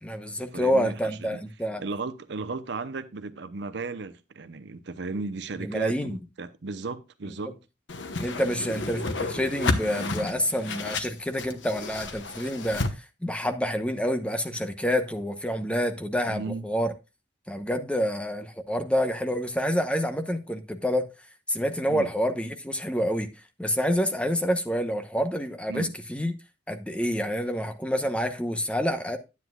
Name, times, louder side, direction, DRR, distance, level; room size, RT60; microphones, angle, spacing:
voice 1, 0.0-1.8 5.6-6.2 7.3-7.4 8.2-16.9 17.5-21.1 21.5-23.3 23.6-26.3 26.7-29.2, equal, 5° left, 0.9 m, -28 dB
voice 2, 0.5-1.4 1.8-7.6 16.3-16.6 21.9-22.1 25.7-25.9, right 3 dB, 70° right, 0.7 m, -35 dB
Whoosh swoosh swish, 7.9-12.9, left 3 dB, 90° left, 1.1 m, -31 dB
10.0 x 9.5 x 2.3 m
head